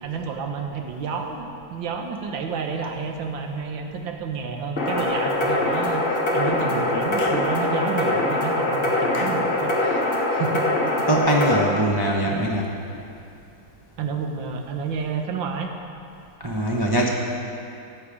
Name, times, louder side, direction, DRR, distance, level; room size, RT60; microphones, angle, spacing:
voice 1, 0.0-10.1 10.3-10.7 14.0-15.7, right 5 dB, 80° right, 4 dB, 1.7 m, -30 dB
sound 1, 4.8-11.6, left 1 dB, 35° left, 1.3 m, -23 dB
Clapping / Chirp tweet, 7.2-7.5 9.1-9.5, left 3 dB, 55° left, 0.6 m, -36 dB
voice 2, 11.1-12.7 16.4-17.1, right 1 dB, 40° right, -2 dB, 0.3 m, -22 dB
14.0 x 8.2 x 4.9 m, 2.6 s
omnidirectional pair, 2.1 m